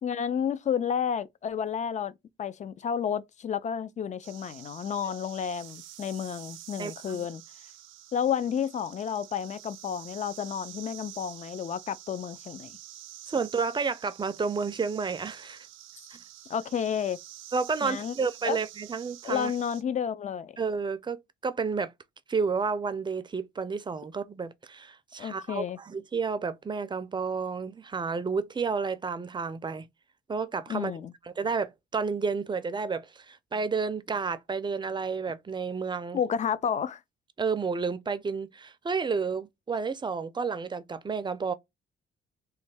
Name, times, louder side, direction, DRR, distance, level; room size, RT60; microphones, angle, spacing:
voice 1, 0.0-2.1 2.4-7.4 8.1-12.7 16.5-17.2 17.8-18.1 18.4-18.6 19.2-20.5 25.2-25.8 30.7-31.1 36.1-37.0, left 8 dB, 40° left, 0.4 m, -31 dB
sound 1, 4.2-19.8, right 13 dB, 80° right, 0.5 m, -48 dB
voice 2, 6.8-7.3 13.3-15.7 16.1-16.2 17.5-19.5 20.6-21.9 22.3-29.9 30.3-30.9 31.3-36.2 37.4-41.5, right 5 dB, 25° right, 0.4 m, -31 dB
3.2 x 2.2 x 3.2 m
cardioid pair, 90°, 20 cm